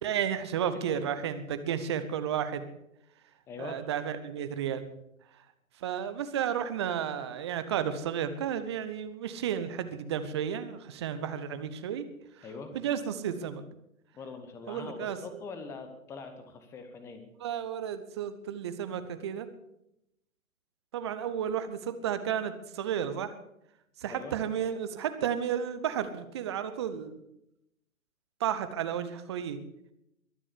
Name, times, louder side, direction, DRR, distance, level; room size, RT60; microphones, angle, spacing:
voice 1, 0.0-2.7 3.6-4.9 5.8-12.1 12.4-12.5 12.7-13.6 14.7-15.2 17.4-19.5 20.9-23.3 24.0-27.2 28.4-29.6, right 9 dB, 20° right, 11 dB, 0.9 m, -32 dB
voice 2, 3.5-3.8 12.4-12.7 14.1-17.2 24.1-24.3, left 4 dB, 5° left, 8 dB, 1.0 m, -43 dB
22.5 x 7.5 x 8.2 m, 0.82 s
figure-of-eight pair, 135°, 41 cm